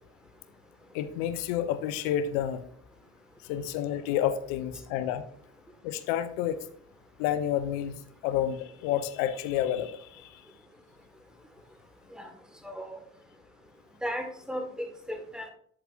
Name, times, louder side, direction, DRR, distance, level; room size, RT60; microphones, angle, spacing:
voice 1, 0.9-2.6 3.4-5.2 5.8-6.6 7.2-7.9 8.2-10.4, left 10 dB, 65° left, 12 dB, 0.8 m, -29 dB
voice 2, 12.6-13.0 14.0-15.5, equal, ahead, 5 dB, 1.6 m, -36 dB
8.8 x 7.7 x 2.5 m, 0.62 s
figure-of-eight pair, 50°, 40 cm